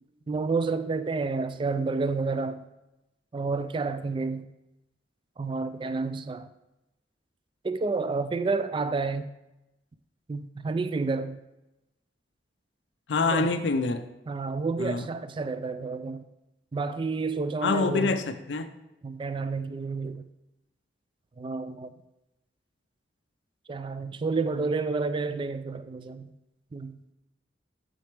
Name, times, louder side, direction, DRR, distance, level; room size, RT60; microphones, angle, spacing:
voice 1, 0.3-2.6 3.3-4.5 5.4-6.5 7.6-9.3 10.3-11.4 13.2-13.6 14.3-16.2 16.7-18.2 19.0-20.3 21.4-21.9 23.7-26.3 26.7-27.0, right 4 dB, 30° right, 0.3 m, -30 dB
voice 2, 13.1-14.0 14.8-15.1 17.6-18.7, left 3 dB, 80° left, 0.5 m, -26 dB
6.8 x 6.3 x 3.3 m
head